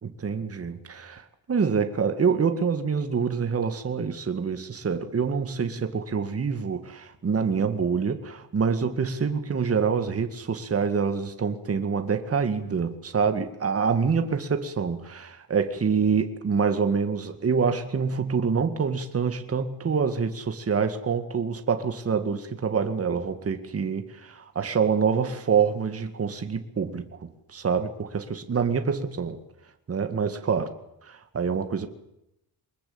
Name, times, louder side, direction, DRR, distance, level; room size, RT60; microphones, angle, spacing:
voice 1, 0.0-1.2 1.5-29.4 29.9-30.7 31.1-31.9, right 6 dB, 35° right, 2.1 m, -26 dB
24.5 x 21.0 x 8.8 m
wide cardioid pair, 150°, 40 cm